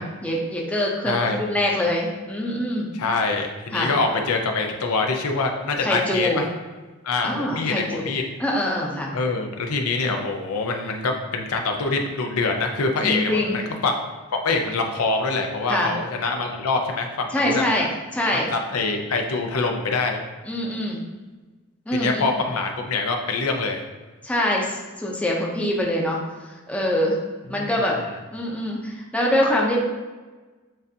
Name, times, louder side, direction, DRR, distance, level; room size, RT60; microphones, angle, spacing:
voice 1, 0.0-2.9 3.7-3.9 5.8-6.4 7.2-8.0 8.4-9.1 13.0-13.6 15.7-15.9 17.3-18.5 20.5-21.0 21.9-22.2 24.2-26.2 26.7-27.2 27.5-28.0 28.3-29.8, left 1 dB, 5° left, -2 dB, 0.6 m, -24 dB
voice 2, 1.1-1.4 3.0-6.5 7.0-8.2 9.1-13.9 14.3-17.6 18.5-20.2 21.9-23.8 27.5-27.7, left 3 dB, 90° left, 3 dB, 0.6 m, -25 dB
7.4 x 2.5 x 2.7 m, 1.3 s
head